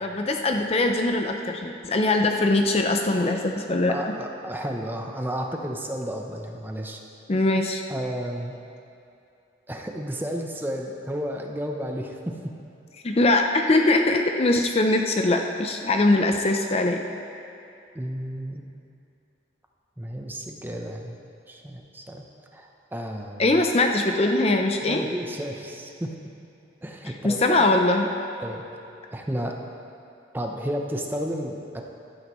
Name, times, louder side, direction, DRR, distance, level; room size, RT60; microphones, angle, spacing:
voice 1, 0.0-4.2 7.3-7.8 13.0-17.0 23.4-25.0 27.2-28.1, left 2 dB, 30° left, 4 dB, 0.5 m, -22 dB
voice 2, 3.9-7.0 7.9-8.6 9.7-12.5 17.9-18.7 20.0-21.2 21.5-22.2 22.5-23.4 24.8-26.2 26.8-27.8 28.4-28.7 29.1-29.6 30.3-31.8, equal, 10° right, 2 dB, 0.7 m, -32 dB
15.0 x 11.5 x 3.1 m, 2.7 s
head